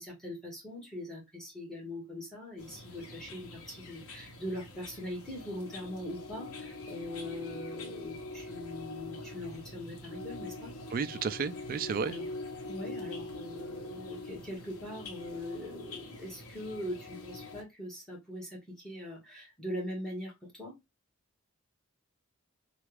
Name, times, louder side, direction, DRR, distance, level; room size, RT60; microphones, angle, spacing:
voice 1, 0.0-10.7 12.0-12.3 12.7-20.7, left 1 dB, ahead, 1.4 m, -41 dB
sound 1, 2.6-17.6, left 2 dB, 80° left, 0.9 m, -44 dB
voice 2, 10.9-12.1, right 5 dB, 40° right, 0.3 m, -32 dB
3.3 x 2.3 x 3.1 m
head